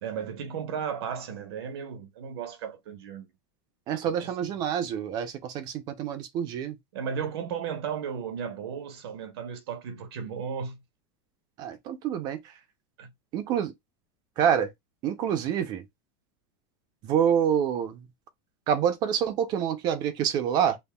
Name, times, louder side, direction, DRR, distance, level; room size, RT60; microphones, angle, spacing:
voice 1, 0.0-3.3 4.1-4.3 6.9-10.8 13.0-13.1, right 7 dB, 85° right, 1.0 m, -35 dB
voice 2, 3.9-6.8 11.6-12.5 13.3-13.7 14.4-14.7 15.0-15.8 17.0-18.1 18.7-20.8, right 9 dB, 30° right, 0.6 m, -27 dB
5.4 x 2.2 x 2.2 m
supercardioid pair, 170°, 13 cm